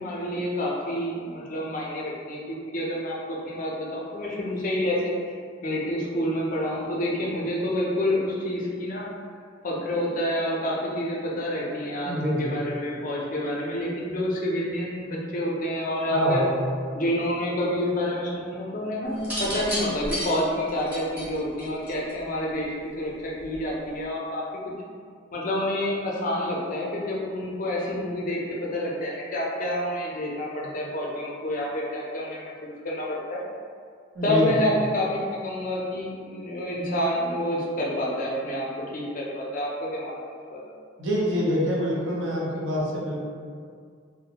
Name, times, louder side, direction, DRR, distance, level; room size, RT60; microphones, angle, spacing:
voice 1, 0.0-5.1 5.6-9.1 9.6-16.4 16.9-24.4 25.3-33.4 34.2-40.6, left 1 dB, 45° left, -4 dB, 0.4 m, -28 dB
voice 2, 12.1-12.5 16.1-16.6 34.2-34.6 41.0-43.2, equal, 75° right, -5 dB, 0.6 m, -25 dB
sound 1, 19.2-22.3 23.4-23.8, equal, 10° right, 0.6 m, -32 dB
2.4 x 2.0 x 2.8 m, 2.1 s
head